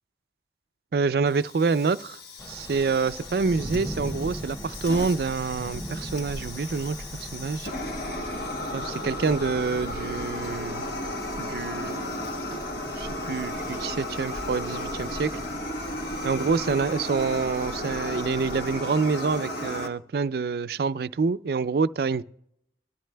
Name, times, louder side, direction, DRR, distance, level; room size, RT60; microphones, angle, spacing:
voice 1, 0.9-2.2 2.5-7.7 8.7-10.9 11.4-12.1 12.5-12.6 13.0-15.3 16.2-22.2, right 4 dB, 60° right, 0.4 m, -27 dB
Fire, 1.3-19.9, left 1 dB, 65° left, 1.3 m, -35 dB
sound 1, 2.4-18.8, equal, 20° left, 2.3 m, -40 dB
22.0 x 13.5 x 2.2 m
head